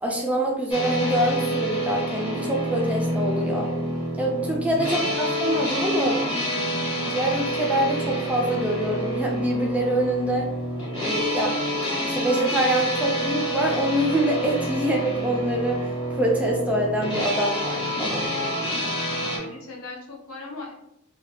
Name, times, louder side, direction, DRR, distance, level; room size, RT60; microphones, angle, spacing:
voice 1, 0.0-3.7 4.2-6.2 7.1-10.5 11.0-11.6 12.0-18.3, right 1 dB, 5° right, -1 dB, 0.3 m, -25 dB
sound 1, 0.7-19.4, equal, 25° left, 0.7 m, -28 dB
voice 2, 3.5-3.8 4.9-5.2 18.5-18.8 19.3-20.7, left 3 dB, 75° left, -1 dB, 0.7 m, -40 dB
2.3 x 2.3 x 3.2 m, 0.78 s
head